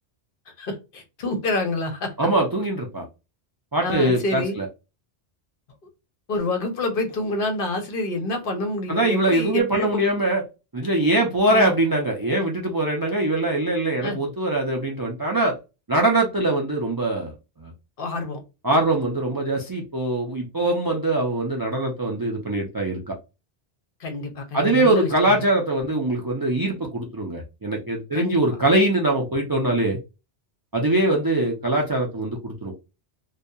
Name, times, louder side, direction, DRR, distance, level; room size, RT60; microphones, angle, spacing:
voice 1, 0.6-2.3 3.8-4.6 6.3-10.2 11.5-11.7 14.0-14.2 18.0-18.4 24.0-25.4 28.1-28.4, left 2 dB, 55° left, 0.8 m, -27 dB
voice 2, 2.2-3.1 3.7-4.7 8.9-10.4 10.7-15.6 15.9-17.3 17.6-17.7 18.6-23.1 24.5-30.0 30.7-32.7, right 1 dB, 35° right, 0.3 m, -22 dB
2.7 x 2.3 x 2.2 m
omnidirectional pair, 1.1 m